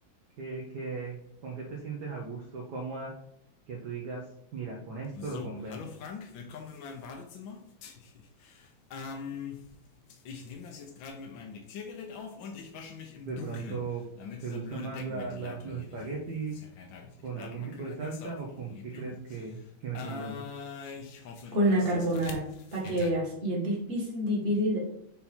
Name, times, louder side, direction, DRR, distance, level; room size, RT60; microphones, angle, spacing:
voice 1, 0.4-1.2 1.4-3.1 3.7-4.3 4.5-5.9 13.2-14.0 14.4-16.6 17.2-20.5, right 4 dB, 60° right, -1 dB, 1.4 m, -37 dB
sound 1, 5.1-13.9 14.2-19.5 19.9-23.1, left 5 dB, 70° left, 1.5 m, -43 dB
voice 2, 21.5-22.4 22.7-24.8, right 1 dB, 30° right, -4 dB, 1.9 m, -27 dB
5.7 x 4.0 x 4.3 m, 0.72 s
omnidirectional pair, 2.3 m